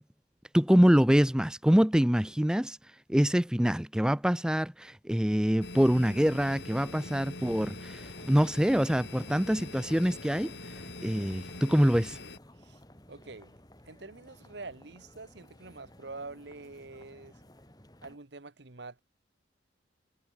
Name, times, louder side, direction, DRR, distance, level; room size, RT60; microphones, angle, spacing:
voice 1, 0.5-2.8 3.1-10.7 11.0-12.2, equal, 5° right, 0.5 m, -25 dB
sound 1, 5.6-12.4, left 2 dB, 65° left, 5.4 m, -44 dB
sound 2, 8.0-18.2, left 1 dB, 20° left, 3.0 m, -55 dB
voice 2, 13.1-13.6 13.9-17.5 18.0-19.0, right 3 dB, 65° right, 1.2 m, -46 dB
head